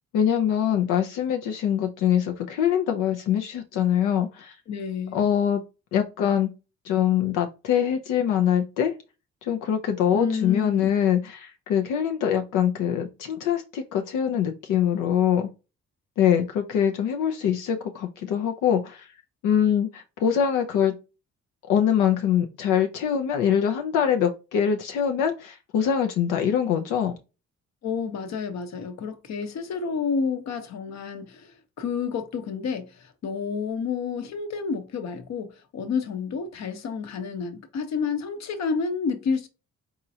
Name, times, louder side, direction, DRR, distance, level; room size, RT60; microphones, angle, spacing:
voice 1, 0.1-4.6 5.1-5.6 5.9-6.5 6.8-8.9 9.4-15.5 16.2-19.1 19.4-20.9 21.7-27.2, left 9 dB, 90° left, 0.7 m, -23 dB
voice 2, 4.7-5.3 10.1-10.9 27.8-31.5 31.8-39.5, left 5 dB, 65° left, 1.0 m, -30 dB
4.3 x 3.7 x 2.8 m
cardioid pair, 90°, 30 cm